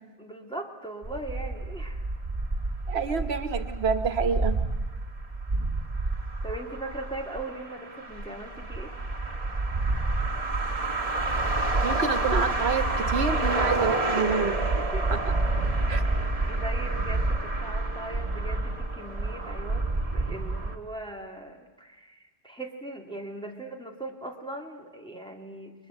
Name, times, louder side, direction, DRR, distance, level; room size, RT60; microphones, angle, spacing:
voice 1, 0.2-2.0 6.4-8.9 14.8-15.2 15.9-16.1 16.5-19.9 20.1-25.7, right 1 dB, 5° left, 0 dB, 2.4 m, -39 dB
sound 1, 1.0-20.8, right 2 dB, 35° right, 1.9 m, -28 dB
voice 2, 2.9-4.5 11.8-14.5 15.1-15.2 15.9-16.0, right 5 dB, 85° right, 9 dB, 1.4 m, -28 dB
30.0 x 22.5 x 7.9 m, 1.3 s
omnidirectional pair, 1.0 m